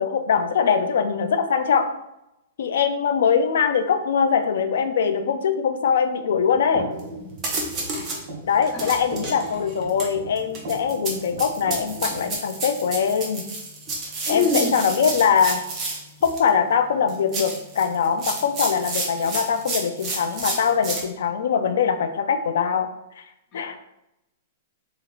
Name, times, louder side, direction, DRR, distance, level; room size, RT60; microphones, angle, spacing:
voice 1, 0.0-1.9 2.6-6.9 8.5-13.5 14.3-15.6 16.2-22.9 23.2-23.3 23.5-23.8, left 6 dB, 75° left, 8 dB, 0.4 m, -22 dB
sound 1, 6.3-12.3, right 2 dB, 60° right, 1.2 m, -38 dB
sound 2, 7.0-7.1 7.4-8.2 8.6-16.5 17.1-21.0, right 3 dB, 25° right, 0.8 m, -31 dB
voice 2, 14.3-14.8 23.5-23.8, left 3 dB, 30° left, -1 dB, 0.9 m, -25 dB
3.1 x 2.5 x 3.9 m, 0.85 s
hypercardioid pair, 150°, 0 cm